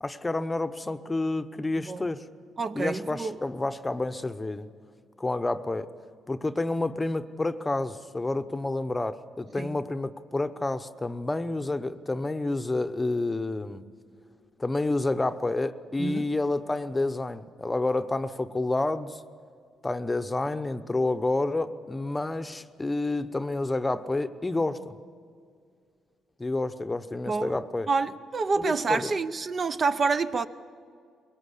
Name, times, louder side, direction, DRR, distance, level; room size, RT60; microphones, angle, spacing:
voice 1, 0.0-2.2 2.7-4.7 5.2-5.9 6.3-13.8 14.6-19.2 19.8-25.0 26.4-27.9 28.6-29.1, left 2 dB, 15° left, 0.8 m, -29 dB
voice 2, 2.6-3.4 9.6-9.8 16.0-16.3 27.3-27.5 27.9-30.5, right 4 dB, 40° right, 0.6 m, -28 dB
22.0 x 18.5 x 8.3 m
cardioid pair, 90°, 0 cm